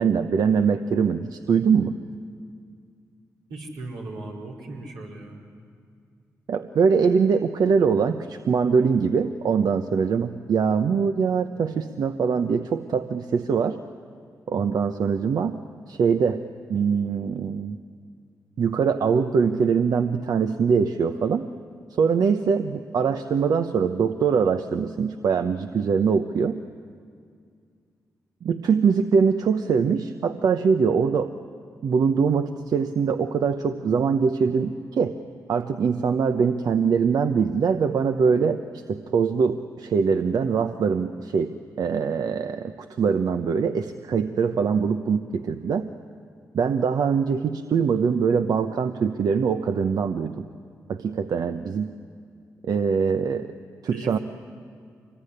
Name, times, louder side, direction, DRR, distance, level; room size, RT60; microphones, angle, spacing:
voice 1, 0.0-2.0 6.5-13.8 14.5-15.6 15.9-16.4 16.7-17.8 18.6-21.4 21.9-26.6 28.4-31.3 31.8-35.1 35.5-38.6 38.9-45.9 46.5-50.5 50.9-51.9 52.6-53.5 53.8-54.2, right 6 dB, 70° right, 8 dB, 0.9 m, -23 dB
voice 2, 3.5-5.4 53.8-54.2, right 2 dB, 90° right, -3 dB, 5.0 m, -37 dB
25.0 x 21.5 x 10.0 m, 2.2 s
supercardioid pair, 50°, 7 cm